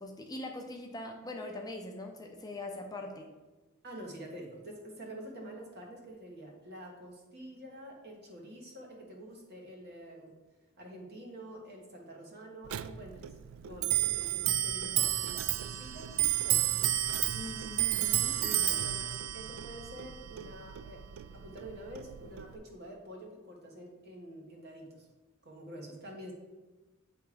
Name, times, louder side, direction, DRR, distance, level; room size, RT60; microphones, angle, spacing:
voice 1, 0.0-3.3 17.3-18.9, left 1 dB, 20° left, 2 dB, 0.6 m, -42 dB
voice 2, 3.8-10.4 10.8-13.4 13.6-16.7 18.7-21.1 21.3-25.1 25.4-26.3, right 1 dB, 50° right, 0 dB, 1.5 m, -47 dB
Clock, 12.7-22.6, right 13 dB, 65° right, 0.3 m, -32 dB
8.4 x 3.4 x 5.1 m, 1.2 s
head